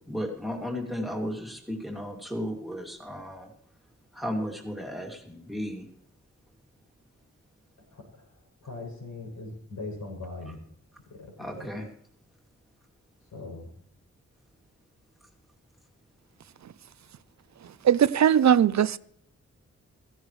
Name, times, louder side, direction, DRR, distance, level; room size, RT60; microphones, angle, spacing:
voice 1, 0.1-3.5 4.1-5.9 11.4-11.9, equal, ahead, 2.6 m, -34 dB
voice 2, 8.6-10.6 13.3-13.7, left 2 dB, 85° left, 7.5 m, -39 dB
voice 3, 17.8-19.0, right 9 dB, 70° right, 0.6 m, -19 dB
16.5 x 15.5 x 3.2 m
wide cardioid pair, 175°, 29 cm